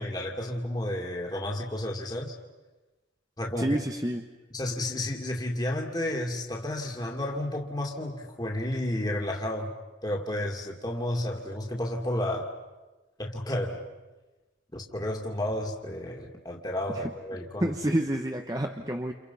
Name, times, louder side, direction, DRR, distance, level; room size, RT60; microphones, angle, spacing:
voice 1, 0.0-2.3 3.4-3.8 4.5-9.7 10.0-12.5 13.2-13.8 14.7-17.7, left 1 dB, 20° left, 0 dB, 2.3 m, -31 dB
voice 2, 3.6-4.3 16.9-17.0 17.6-19.1, right 1 dB, 20° right, 4 dB, 1.0 m, -28 dB
29.5 x 29.5 x 5.6 m, 1.2 s
head